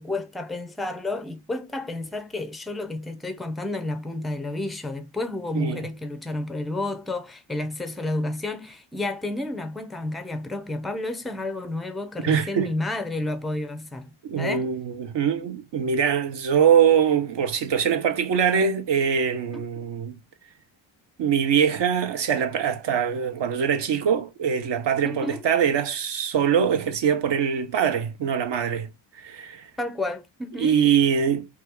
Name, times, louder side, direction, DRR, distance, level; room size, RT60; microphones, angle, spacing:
voice 1, 0.0-14.1 14.4-14.7 19.5-19.9 25.0-25.5 29.8-30.8, left 2 dB, ahead, 0.4 m, -31 dB
voice 2, 12.2-12.7 14.2-20.2 21.2-28.9 29.2-29.6 30.6-31.5, right 7 dB, 60° right, 0.7 m, -23 dB
2.8 x 2.3 x 3.5 m
cardioid pair, 70°, 49 cm